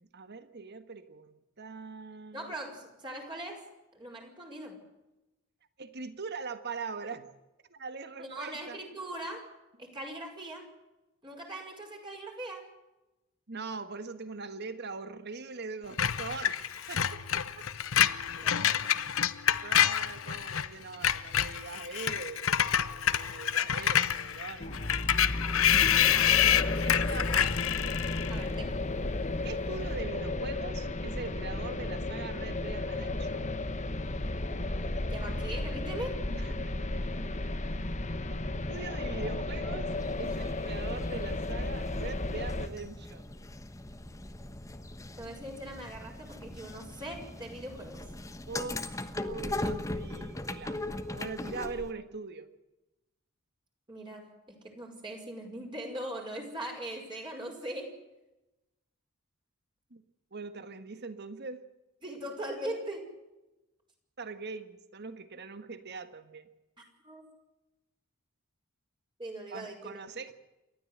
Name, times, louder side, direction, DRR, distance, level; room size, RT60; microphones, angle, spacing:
voice 1, 0.0-2.5 5.8-7.3 7.7-8.8 13.5-17.7 18.4-18.5 19.6-25.1 25.9-26.4 26.8-27.7 29.4-33.5 36.3-36.7 38.6-39.9 40.2-43.3 48.5-52.5 59.9-60.0 60.3-61.6 64.2-66.5 69.5-70.3, right 4 dB, 50° right, 11 dB, 1.6 m, -42 dB
voice 2, 2.3-3.6 3.9-4.8 8.2-9.5 9.8-10.7 11.2-12.6 18.0-18.9 26.2-26.4 28.3-28.8 35.1-36.2 45.2-48.1 53.9-58.0 62.0-63.1 67.0-67.2 69.2-70.0, right 1 dB, 25° right, 0 dB, 5.4 m, -41 dB
Screech, 16.0-20.7 20.9-28.4, left 9 dB, 75° left, 0.9 m, -27 dB
sound 1, 24.6-42.7, left 2 dB, 35° left, 1.4 m, -33 dB
sound 2, 39.9-51.9, left 2 dB, 15° left, 1.2 m, -40 dB
29.0 x 13.0 x 7.9 m, 0.99 s
head